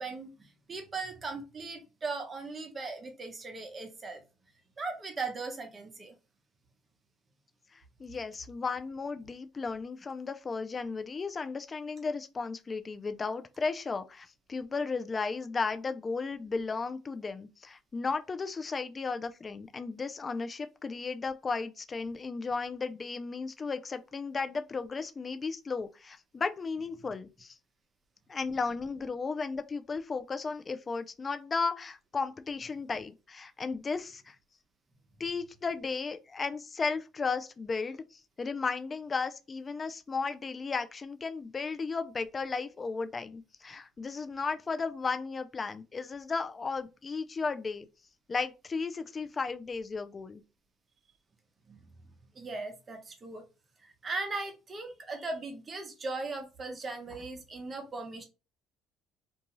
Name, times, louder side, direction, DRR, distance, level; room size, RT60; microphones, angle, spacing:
voice 1, 0.0-4.2 4.8-6.1 51.7-53.4 53.8-58.2, right 3 dB, 30° right, 0.8 m, -38 dB
voice 2, 7.7-27.5 28.3-34.4 35.2-38.0 38.4-47.9 48.3-50.4, left 4 dB, 30° left, 0.4 m, -35 dB
2.6 x 2.3 x 3.0 m
supercardioid pair, 95°, 0 cm